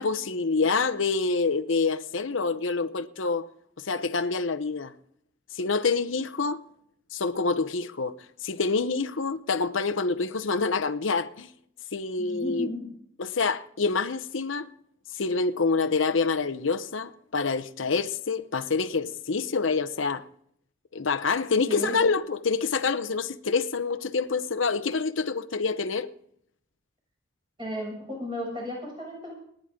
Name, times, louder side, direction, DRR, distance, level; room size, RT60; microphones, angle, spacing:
voice 1, 0.0-3.5 3.8-4.9 5.5-6.6 7.1-8.1 8.4-11.5 11.9-12.7 13.2-14.7 15.1-20.2 20.9-26.1, left 4 dB, 90° left, 0.9 m, -27 dB
voice 2, 12.2-12.9 21.7-22.0 27.6-29.3, equal, 25° right, 7.2 m, -34 dB
28.5 x 10.5 x 3.8 m
head